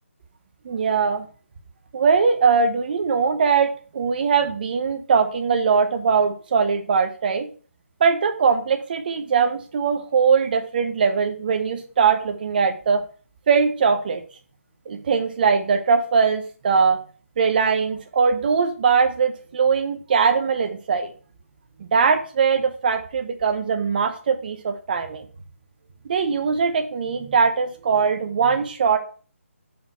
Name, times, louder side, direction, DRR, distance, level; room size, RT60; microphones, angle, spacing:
voice 1, 0.6-1.3 1.9-7.5 8.0-13.0 13.5-14.2 14.9-17.0 17.4-21.1 21.8-25.2 26.0-29.0, right 5 dB, 40° right, 6 dB, 0.9 m, -21 dB
6.0 x 5.2 x 4.6 m, 0.40 s
figure-of-eight pair, 155°, 8 cm